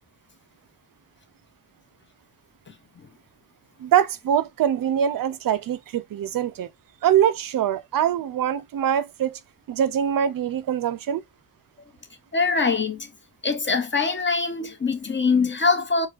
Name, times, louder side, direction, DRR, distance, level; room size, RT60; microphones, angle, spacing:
voice 1, 3.8-6.7 7.0-9.4 9.7-11.2, right 9 dB, 65° right, 0.5 m, -23 dB
voice 2, 12.3-13.1 13.4-16.1, left 4 dB, 30° left, 0.8 m, -23 dB
4.4 x 2.2 x 2.4 m
cardioid pair, 70°, 36 cm